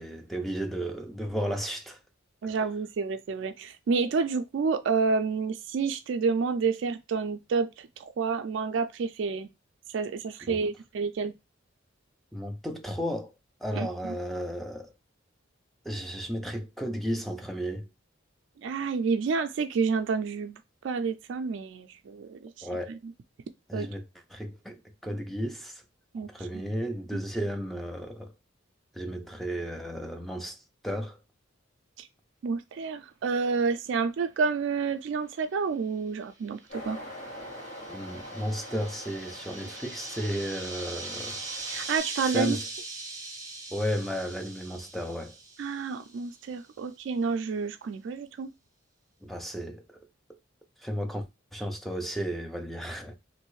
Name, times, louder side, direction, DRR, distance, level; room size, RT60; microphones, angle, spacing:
voice 1, 0.0-2.0 2.4-2.6 10.4-10.6 12.3-13.3 13.6-14.9 15.8-17.9 22.6-23.0 23.7-24.8 25.0-25.8 26.3-28.3 28.9-31.2 37.9-41.4 42.2-42.7 43.7-45.3 49.2-50.0 50.8-51.3 51.5-53.2, equal, ahead, 0.5 m, -34 dB
voice 2, 2.4-9.5 9.9-11.3 13.8-13.9 18.6-20.5 20.8-22.7 23.7-23.9 26.1-26.3 32.0-32.1 32.4-36.6 36.9-37.0 41.7-42.6 45.6-48.5, right 5 dB, 65° right, 0.3 m, -29 dB
sound 1, 36.5-46.3, right 3 dB, 20° right, 0.9 m, -41 dB
sound 2, 36.7-42.0, left 1 dB, 45° left, 2.3 m, -44 dB
3.0 x 2.6 x 3.1 m
head